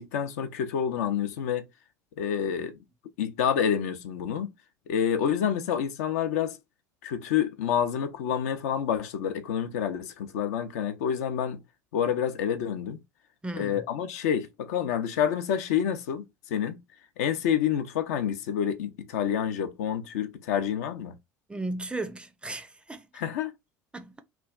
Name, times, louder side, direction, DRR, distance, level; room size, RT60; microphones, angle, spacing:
voice 1, 0.0-1.6 2.2-2.8 3.2-4.5 4.9-6.6 7.0-11.6 11.9-13.0 13.6-16.8 17.2-21.1 23.1-23.5, left 8 dB, 65° left, 0.5 m, -28 dB
voice 2, 13.4-13.8 21.5-23.1 23.9-24.2, right 2 dB, 10° right, 0.4 m, -35 dB
3.1 x 2.3 x 2.3 m
figure-of-eight pair, 70°, 9 cm